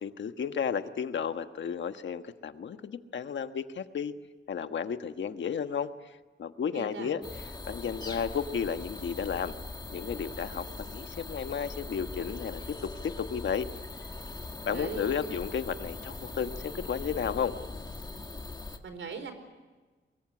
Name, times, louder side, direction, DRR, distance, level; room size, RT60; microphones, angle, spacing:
voice 1, 0.0-4.1 4.5-7.2 7.7-9.5 9.9-13.7 14.6-17.5, left 7 dB, 70° left, 8 dB, 1.4 m, -33 dB
voice 2, 6.7-7.1 14.7-15.0 18.8-19.3, right 5 dB, 80° right, 8 dB, 4.5 m, -39 dB
sound 1, 7.2-18.8, left 3 dB, 20° left, 1.8 m, -41 dB
23.5 x 22.5 x 9.7 m, 1.3 s
wide cardioid pair, 150°, 20 cm